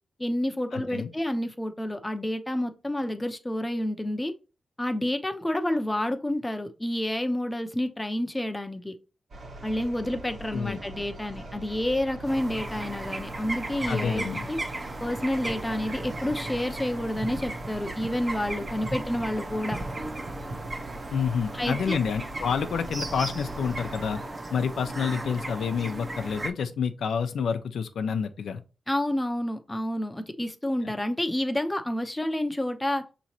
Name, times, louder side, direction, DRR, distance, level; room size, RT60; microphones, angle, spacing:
voice 1, 0.2-4.3 4.8-8.9 9.6-14.6 15.0-19.8 21.5-22.0 28.9-33.0, left 1 dB, 15° left, 0.6 m, -29 dB
voice 2, 0.7-1.1 10.5-10.8 13.9-14.5 21.1-24.2 24.5-28.6, left 6 dB, 80° left, 0.5 m, -28 dB
sound 1, 9.3-24.3, right 1 dB, 60° right, 1.3 m, -42 dB
Birds and Crows, 12.2-26.5, right 2 dB, 35° right, 0.7 m, -36 dB
6.1 x 3.0 x 2.8 m
cardioid pair, 95°, 0 cm